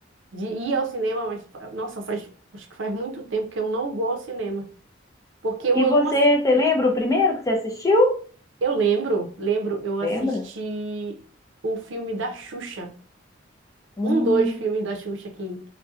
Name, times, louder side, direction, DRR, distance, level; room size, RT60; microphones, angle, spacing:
voice 1, 0.3-2.3 2.5-4.7 5.4-6.2 8.6-11.2 11.6-12.9 14.0-15.7, right 4 dB, 70° right, 0.6 m, -27 dB
voice 2, 5.8-8.2 10.0-10.4 14.0-14.5, left 2 dB, 15° left, 0.4 m, -21 dB
2.6 x 2.1 x 2.3 m
head